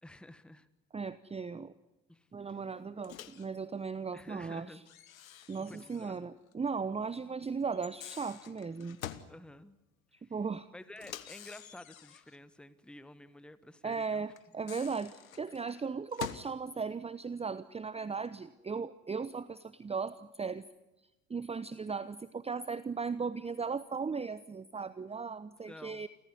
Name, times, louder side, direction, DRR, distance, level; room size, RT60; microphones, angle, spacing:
voice 1, 0.0-0.7 2.1-2.3 4.1-4.8 5.6-6.2 9.3-9.8 10.2-10.3 10.7-14.3 25.7-26.1, left 1 dB, ahead, 14 dB, 1.3 m, -51 dB
voice 2, 0.9-1.7 2.3-4.8 5.5-9.0 10.3-10.7 13.8-20.7 21.3-26.1, right 5 dB, 15° right, 16 dB, 0.8 m, -37 dB
Microwave oven, 3.0-3.5 4.9-6.2 6.5-6.6 7.7-9.3 11.0-12.4 14.4-16.6, left 11 dB, 85° left, 1.0 m, -46 dB
28.5 x 15.0 x 9.5 m, 0.98 s
hypercardioid pair, 60°, 40 cm